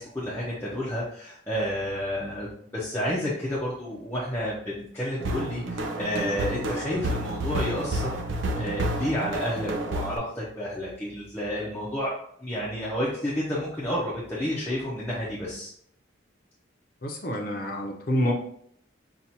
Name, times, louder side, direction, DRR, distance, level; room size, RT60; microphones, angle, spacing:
voice 1, 0.0-2.5 2.7-8.2 8.5-12.1 12.4-15.7, equal, 10° left, -7 dB, 0.6 m, -30 dB
sound 1, 5.2-10.2, right 1 dB, 80° right, 0.6 m, -30 dB
voice 2, 17.0-18.3, equal, 50° left, 1 dB, 0.7 m, -27 dB
5.8 x 2.4 x 2.7 m, 0.65 s
head